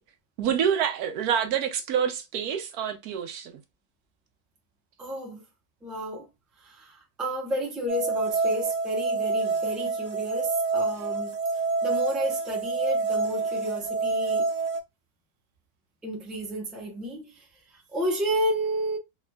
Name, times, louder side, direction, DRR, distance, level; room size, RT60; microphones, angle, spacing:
voice 1, 0.4-3.6, right 8 dB, 80° right, 1.2 m, -27 dB
voice 2, 5.0-5.4 5.8-6.3 6.6-14.5 16.0-19.0, equal, ahead, 0.6 m, -31 dB
sound 1, 7.9-14.8, right 4 dB, 60° right, 1.0 m, -27 dB
3.3 x 2.8 x 2.2 m
omnidirectional pair, 1.6 m